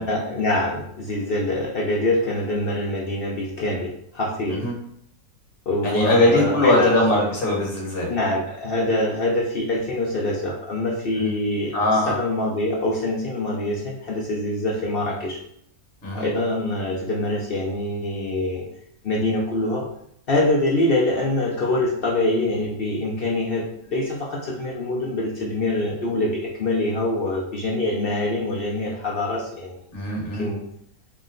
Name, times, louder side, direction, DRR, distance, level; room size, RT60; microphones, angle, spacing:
voice 1, 0.0-4.6 5.7-7.2 8.1-15.4 16.1-18.7 19.0-19.9 20.3-29.8 30.4-30.6, left 1 dB, 60° left, -2 dB, 0.6 m, -24 dB
voice 2, 5.8-8.1 11.2-11.3 11.7-12.1 16.0-16.3 29.9-30.5, left 1 dB, 35° left, -2 dB, 1.4 m, -21 dB
4.6 x 2.1 x 3.7 m, 0.71 s
omnidirectional pair, 1.6 m